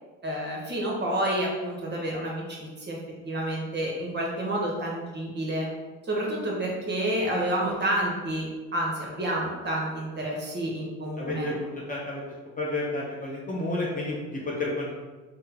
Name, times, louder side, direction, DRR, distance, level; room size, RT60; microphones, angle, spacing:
voice 1, 0.2-3.0 3.2-5.7 6.0-11.5, right 1 dB, 30° right, -2 dB, 0.9 m, -29 dB
voice 2, 11.2-12.2 12.6-14.9, left 2 dB, 20° left, -4 dB, 0.7 m, -31 dB
3.5 x 2.1 x 2.9 m, 1.2 s
hypercardioid pair, 75°, 38 cm